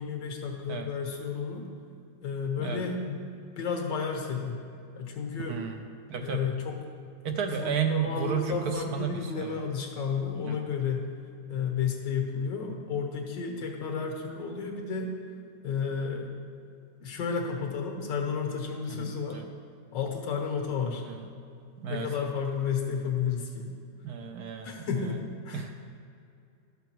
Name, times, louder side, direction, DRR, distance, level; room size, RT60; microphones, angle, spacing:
voice 1, 0.0-1.6 2.2-3.3 3.6-4.6 5.0-5.6 6.2-6.8 7.3-11.1 11.5-15.1 15.6-16.3 17.0-19.4 19.9-21.1 21.9-23.7 24.6-25.6, left 6 dB, 80° left, 2 dB, 1.9 m, -32 dB
voice 2, 5.5-5.8 6.1-6.5 7.2-9.1 9.4-9.6 10.4-10.6 18.9-19.4 21.1-21.2 21.8-22.1 24.0-24.9 25.5-25.7, right 6 dB, 70° right, 4 dB, 1.1 m, -32 dB
12.0 x 6.9 x 4.6 m, 2.5 s
omnidirectional pair, 2.0 m